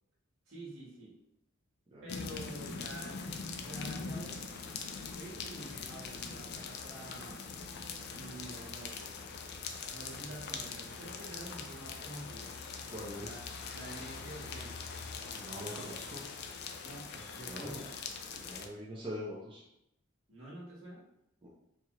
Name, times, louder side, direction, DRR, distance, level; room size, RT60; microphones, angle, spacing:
voice 1, 0.5-1.1 2.0-4.4 5.1-7.4 8.1-9.2 9.9-12.5 13.2-13.4 13.7-14.9 16.8-17.9 20.3-21.0, right 1 dB, 70° right, -5 dB, 1.5 m, -48 dB
sound 1, 2.1-18.7, left 5 dB, 55° left, 0.4 m, -42 dB
voice 2, 12.9-13.4 15.3-16.3 17.5-17.9 18.4-19.6 21.4-21.5, equal, 25° right, -6 dB, 0.7 m, -43 dB
4.4 x 2.5 x 3.0 m, 0.81 s
head